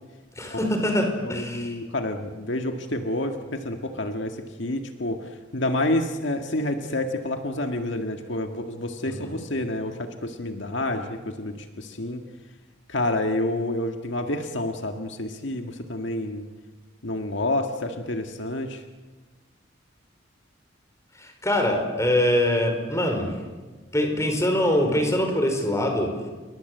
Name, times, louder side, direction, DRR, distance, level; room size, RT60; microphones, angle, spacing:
voice 1, 0.4-1.8 9.2-9.4 21.2-23.3 23.9-26.2, left 1 dB, 15° left, 5 dB, 5.0 m, -23 dB
voice 2, 1.2-12.2 12.9-16.4 17.0-18.8, left 1 dB, 65° left, 5 dB, 1.8 m, -29 dB
29.0 x 24.0 x 8.0 m, 1.3 s
head